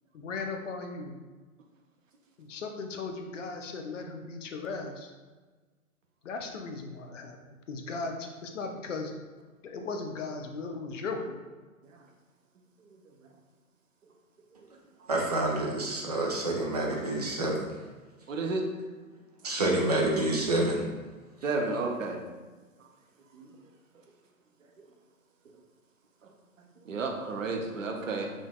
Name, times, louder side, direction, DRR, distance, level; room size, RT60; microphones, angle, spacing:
voice 1, 0.1-1.2 2.4-5.1 6.2-9.1 9.6-11.4, left 4 dB, 60° left, 4 dB, 0.6 m, -37 dB
voice 2, 15.1-17.7 19.4-20.9, right 2 dB, 30° right, -1 dB, 0.4 m, -28 dB
voice 3, 18.3-18.6 21.4-22.2 23.3-23.5 26.9-28.3, right 3 dB, 60° right, 2 dB, 0.7 m, -31 dB
5.0 x 2.5 x 2.3 m, 1.3 s
figure-of-eight pair, 120°, 43 cm